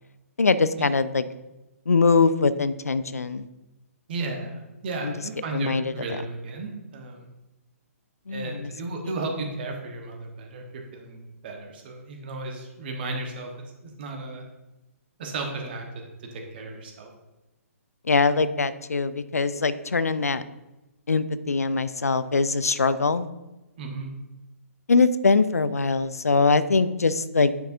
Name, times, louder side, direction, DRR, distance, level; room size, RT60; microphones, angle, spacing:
voice 1, 0.4-1.2 1.9-3.5 5.0-5.1 5.5-6.2 8.3-8.7 9.0-9.1 18.0-20.4 21.1-23.3 24.9-27.5, left 4 dB, 75° left, 15 dB, 0.4 m, -22 dB
voice 2, 4.1-7.3 8.3-11.2 11.4-13.5 13.8-14.4 15.2-15.8 16.3-17.1 23.8-24.1, right 2 dB, 40° right, 3 dB, 1.1 m, -34 dB
9.1 x 4.7 x 2.6 m, 1.0 s
figure-of-eight pair, 130°, 8 cm